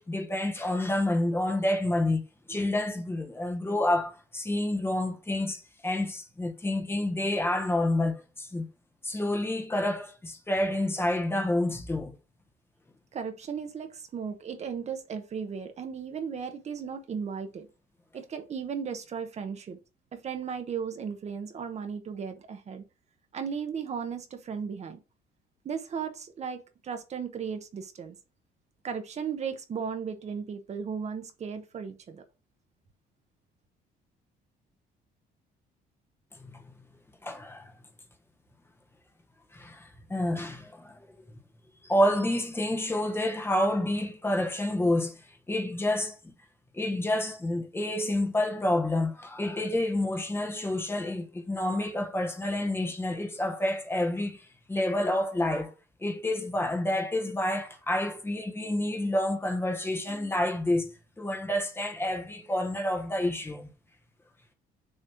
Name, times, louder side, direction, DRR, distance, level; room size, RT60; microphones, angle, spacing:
voice 1, 0.0-2.2 2.5-8.6 9.0-12.1 36.4-36.6 37.2-37.7 39.5-41.1 41.8-45.2 45.5-46.3 46.7-55.7 56.0-63.7, left 1 dB, 15° left, 1.1 m, -29 dB
voice 2, 13.1-17.7 18.1-19.8 20.1-22.8 23.3-25.0 25.6-28.2 28.8-32.2, right 6 dB, 40° right, 1.0 m, -36 dB
6.4 x 3.0 x 5.7 m
cardioid pair, 110°, 17 cm